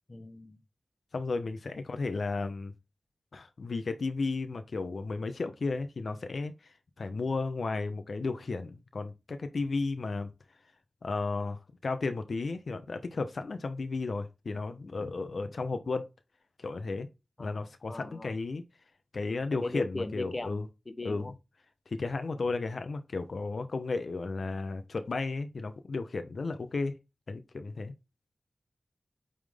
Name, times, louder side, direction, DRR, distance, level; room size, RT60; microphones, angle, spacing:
voice 1, 0.1-0.6 17.4-18.3 19.6-21.3, left 2 dB, 40° left, 0.9 m, -39 dB
voice 2, 1.1-2.7 3.3-10.3 11.0-16.1 16.6-17.1 17.4-18.6 19.1-20.7 21.0-21.2 21.9-26.9 27.3-27.9, left 3 dB, 80° left, 0.8 m, -34 dB
8.6 x 3.8 x 3.6 m
wide cardioid pair, 75°, 0 cm